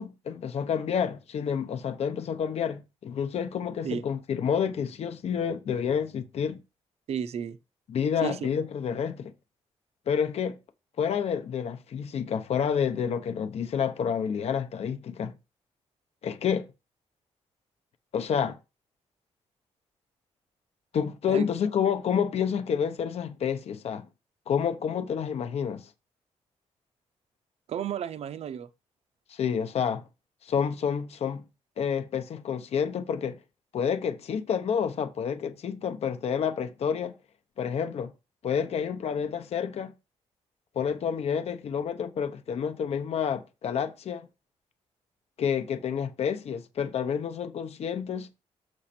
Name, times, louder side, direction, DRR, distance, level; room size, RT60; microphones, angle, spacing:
voice 1, 0.0-6.6 7.9-9.3 10.1-10.6 11.0-15.3 16.2-16.7 18.1-18.6 20.9-24.0 24.5-25.9 29.3-30.0 30.4-31.4 31.8-33.4 33.7-37.1 37.6-38.1 38.4-39.9 40.8-44.3 45.4-48.3, left 7 dB, 60° left, 0.9 m, -29 dB
voice 2, 7.1-7.6 8.2-8.5 21.3-21.5 27.7-28.7, right 8 dB, 60° right, 0.6 m, -33 dB
6.5 x 6.3 x 4.3 m
cardioid pair, 125°, 12 cm